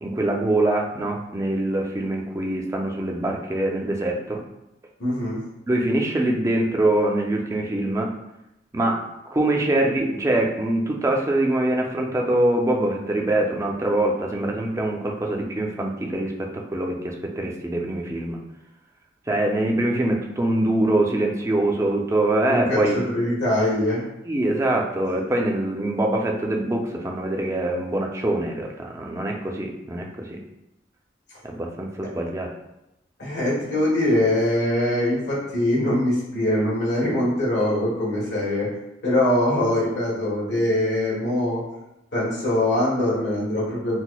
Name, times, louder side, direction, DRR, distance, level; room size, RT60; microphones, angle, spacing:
voice 1, 0.0-4.4 5.7-8.1 8.7-18.4 19.3-23.1 24.3-30.4 31.4-32.5, right 1 dB, 15° right, 0 dB, 0.4 m, -24 dB
voice 2, 5.0-5.4 22.5-24.1 33.2-38.7 39.0-41.6 42.1-44.0, left 1 dB, 75° left, -6 dB, 1.3 m, -22 dB
5.8 x 2.0 x 2.2 m, 0.89 s
head